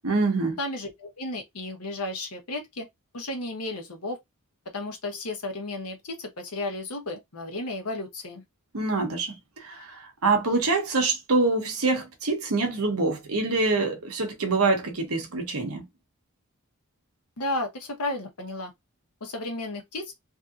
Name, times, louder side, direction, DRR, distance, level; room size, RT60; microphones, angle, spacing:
voice 1, 0.0-0.6 8.7-9.4 9.6-15.8, right 3 dB, 80° right, 1.2 m, -25 dB
voice 2, 0.6-2.9 3.1-4.2 4.7-8.4 17.4-18.7 19.2-20.1, left 2 dB, 90° left, 1.2 m, -33 dB
3.4 x 2.8 x 2.5 m
head